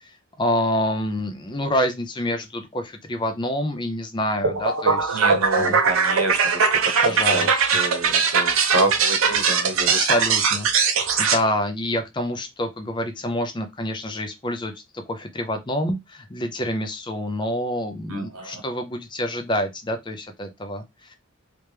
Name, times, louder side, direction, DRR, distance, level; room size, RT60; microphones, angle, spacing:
voice 1, 0.0-5.8 7.0-7.6 10.0-14.8 15.1-21.1, left 1 dB, 20° left, 0.5 m, -27 dB
sound 1, 4.4-11.4, right 5 dB, 70° right, 0.6 m, -20 dB
voice 2, 5.1-7.5 7.7-10.1 18.1-18.6, right 2 dB, 90° right, 1.0 m, -28 dB
3.3 x 3.0 x 3.3 m
head